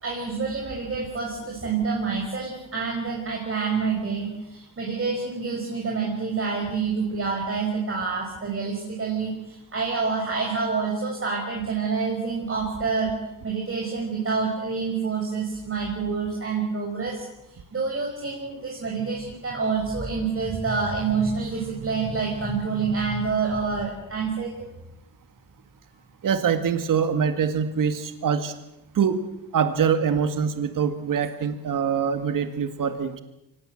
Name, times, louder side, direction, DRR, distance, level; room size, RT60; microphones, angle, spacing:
voice 1, 0.0-13.1 13.4-17.3 17.7-24.5, right 5 dB, 35° right, -1 dB, 5.8 m, -27 dB
voice 2, 26.2-28.5 29.0-29.2 29.5-33.2, right 7 dB, 60° right, 9 dB, 2.0 m, -24 dB
24.5 x 19.0 x 7.8 m, 0.89 s
cardioid pair, 95°, 36 cm